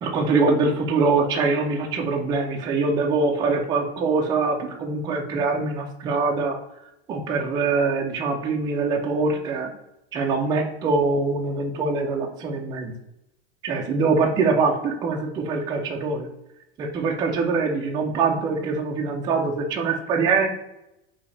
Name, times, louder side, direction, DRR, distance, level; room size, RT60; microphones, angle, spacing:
voice 1, 0.0-6.6 7.1-9.7 10.1-12.9 13.6-16.3 16.8-20.5, right 4 dB, 15° right, 1 dB, 0.3 m, -23 dB
4.8 x 2.8 x 3.2 m, 0.87 s
supercardioid pair, 160°, 30 cm